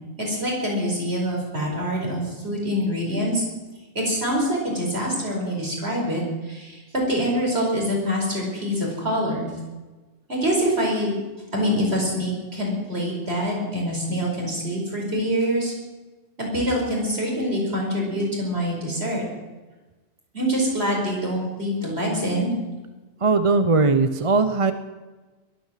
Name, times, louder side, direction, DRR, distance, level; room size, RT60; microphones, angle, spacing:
voice 1, 0.2-3.5 4.0-9.5 10.3-11.1 11.5-15.7 16.4-19.2 20.3-22.5, equal, 55° right, -1 dB, 5.3 m, -25 dB
voice 2, 23.2-24.7, right 4 dB, 30° right, 10 dB, 0.7 m, -19 dB
21.5 x 8.8 x 7.5 m, 1.2 s
omnidirectional pair, 1.3 m